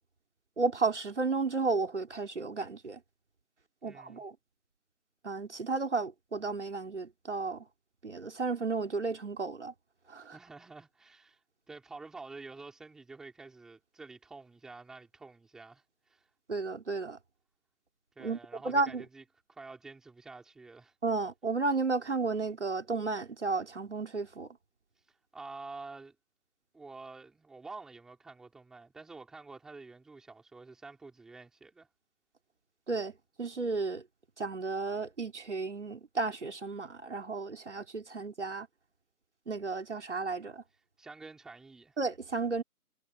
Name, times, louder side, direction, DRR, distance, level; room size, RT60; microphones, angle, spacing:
voice 1, 0.6-3.0 3.8-4.4 5.2-7.7 8.0-9.7 10.1-10.4 16.5-17.2 18.2-18.4 18.6-19.0 21.0-24.5 32.9-33.1 33.4-34.0 34.4-38.7 39.5-40.6 42.0-42.6, right 3 dB, 50° right, 3.8 m, -33 dB
voice 2, 3.8-4.2 10.3-11.4 11.7-16.3 18.2-19.2 19.5-20.9 25.3-26.2 26.7-31.9 41.0-42.0, right 3 dB, ahead, 4.1 m, -49 dB
figure-of-eight pair, 175°, 46 cm